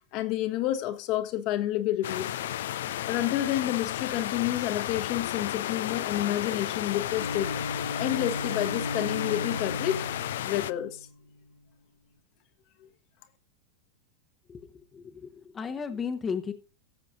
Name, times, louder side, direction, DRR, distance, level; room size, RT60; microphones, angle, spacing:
voice 1, 0.1-2.3 3.1-7.5 8.0-10.0 10.4-11.1 12.8-12.9, left 13 dB, 40° left, 1.2 m, -29 dB
sound 1, 2.0-10.7, left 12 dB, 55° left, 0.4 m, -33 dB
Bowed string instrument, 7.1-11.1, left 2 dB, 80° left, 1.0 m, -36 dB
voice 2, 14.5-16.5, left 6 dB, 20° left, 1.0 m, -35 dB
17.5 x 7.5 x 2.6 m
figure-of-eight pair, 90°, 0 cm